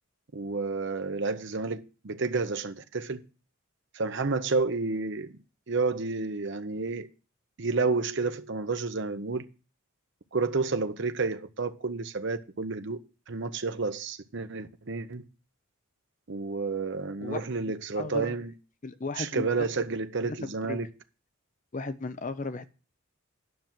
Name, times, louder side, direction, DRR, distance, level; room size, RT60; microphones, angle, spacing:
voice 1, 0.3-3.2 3.9-5.3 5.7-7.1 7.6-9.5 10.3-13.0 13.3-15.2 16.3-18.5 19.2-20.9, right 4 dB, 55° right, 0.7 m, -30 dB
voice 2, 18.0-18.3 18.8-19.7 20.3-20.8 21.7-22.7, left 3 dB, 35° left, 0.6 m, -35 dB
9.4 x 5.9 x 7.5 m
head